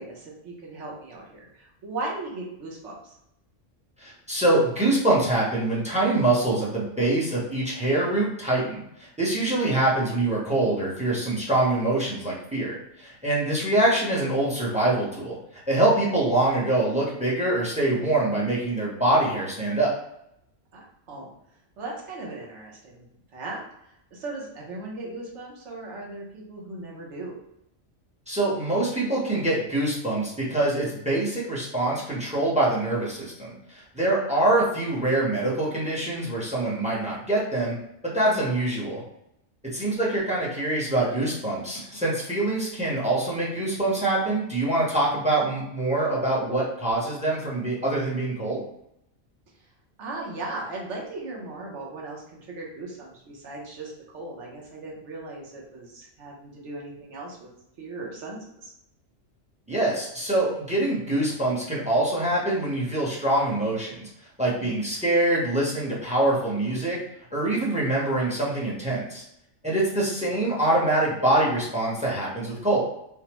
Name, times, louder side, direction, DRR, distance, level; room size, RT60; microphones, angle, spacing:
voice 1, 0.0-3.1 9.5-9.6 20.7-21.3 21.8-23.1 23.3-23.6 24.1-27.3 34.3-34.5 38.2-38.4 50.0-57.5 57.8-58.7 64.6-64.8 70.2-70.4, right 2 dB, 65° right, -2 dB, 1.1 m, -37 dB
voice 2, 4.0-19.9 28.3-37.8 38.0-39.0 39.7-48.6 59.7-64.1 64.4-67.0 67.3-69.2 69.6-72.8, right 2 dB, 5° right, -5 dB, 0.6 m, -24 dB
3.4 x 2.0 x 2.9 m, 0.79 s
omnidirectional pair, 1.3 m